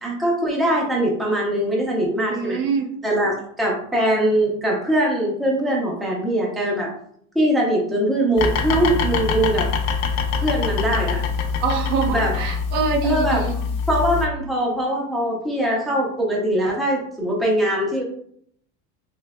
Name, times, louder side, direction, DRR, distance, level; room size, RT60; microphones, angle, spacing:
voice 1, 0.0-2.6 3.0-6.9 7.3-9.7 10.4-11.2 12.1-12.3 13.0-13.4 13.9-18.0, right 1 dB, ahead, -3 dB, 0.6 m, -22 dB
voice 2, 2.3-2.9 11.6-13.5, right 5 dB, 65° right, 2 dB, 0.9 m, -24 dB
sound 1, 8.4-14.3, left 5 dB, 90° left, 0.7 m, -24 dB
3.6 x 3.1 x 2.2 m, 0.65 s
cardioid pair, 140°, 39 cm